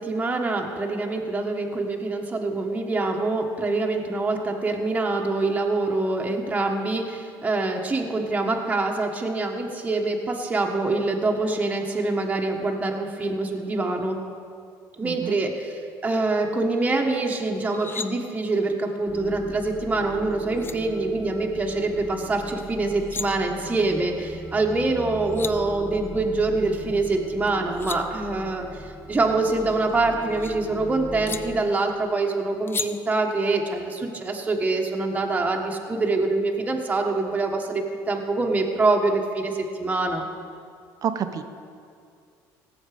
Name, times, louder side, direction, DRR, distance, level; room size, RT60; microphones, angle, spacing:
voice 1, 0.0-14.2 15.0-40.3, right 3 dB, 20° right, 1 dB, 1.4 m, -25 dB
voice 2, 15.0-15.4 41.0-41.4, right 8 dB, 50° right, 9 dB, 0.8 m, -28 dB
sound 1, 17.6-18.1 20.1-20.2 20.5-20.7 22.8-23.3 24.9-25.0 25.2-25.5 27.5-28.0 29.5-30.5 31.3-31.4 32.7-32.9, left 5 dB, 30° left, 0.6 m, -34 dB
sound 2, 19.1-31.6, right 1 dB, 5° right, 1.7 m, -39 dB
17.0 x 7.2 x 5.0 m, 2.3 s
cardioid pair, 100°, 8 cm